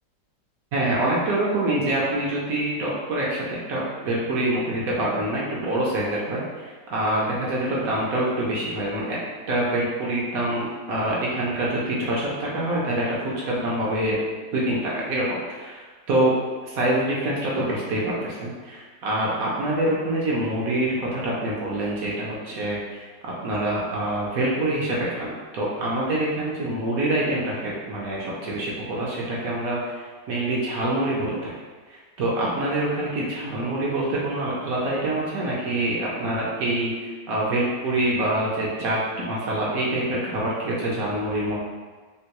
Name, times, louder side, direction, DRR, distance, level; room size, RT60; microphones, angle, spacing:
voice 1, 0.7-9.2 9.5-14.2 14.5-16.3 16.7-31.5 31.9-41.6, right 1 dB, 65° right, -5 dB, 0.9 m, -26 dB
3.7 x 2.2 x 2.8 m, 1.4 s
omnidirectional pair, 1.9 m